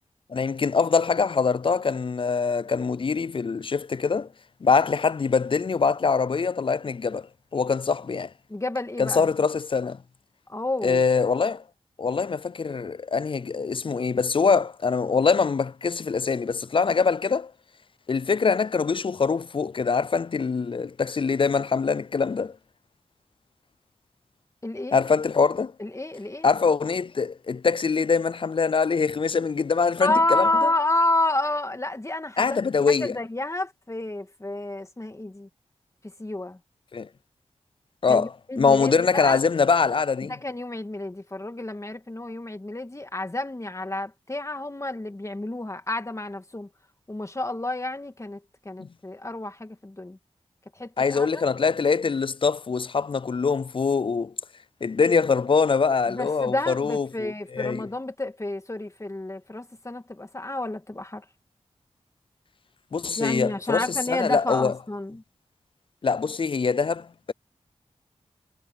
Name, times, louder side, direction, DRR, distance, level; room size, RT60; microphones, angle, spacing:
voice 1, 0.3-4.3 4.6-7.3 7.5-8.3 9.0-10.0 10.8-11.6 12.0-17.5 18.1-22.5 24.9-25.7 26.4-30.7 32.4-33.2 36.9-37.1 38.0-40.3 51.0-54.3 54.8-57.9 62.9-64.7 66.0-67.3, left 5 dB, 45° left, 0.4 m, -23 dB
voice 2, 8.5-9.3 10.5-11.0 24.6-25.0 25.8-26.5 30.0-32.6 33.0-35.5 36.2-36.6 38.1-39.4 40.2-46.7 47.1-48.4 48.6-50.2 50.8-51.4 56.1-61.2 63.2-65.2, left 2 dB, 25° left, 2.3 m, -29 dB
wide cardioid pair, 65°, 12 cm